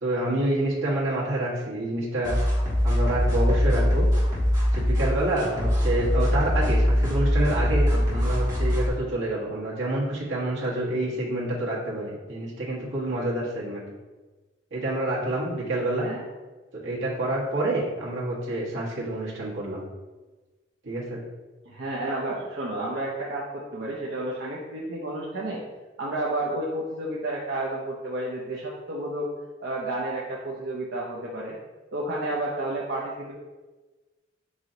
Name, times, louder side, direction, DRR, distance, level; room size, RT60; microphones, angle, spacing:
voice 1, 0.0-2.3 2.8-4.1 4.7-13.8 14.7-16.1 16.7-19.9 20.8-21.2, right 1 dB, 85° right, -6 dB, 1.4 m, -28 dB
sound 1, 2.2-8.9, equal, 20° right, 1.4 m, -22 dB
voice 2, 21.7-25.6 26.0-29.3 29.6-31.6 31.9-33.3, right 1 dB, 60° right, -5 dB, 0.6 m, -31 dB
4.8 x 2.7 x 3.9 m, 1.2 s
head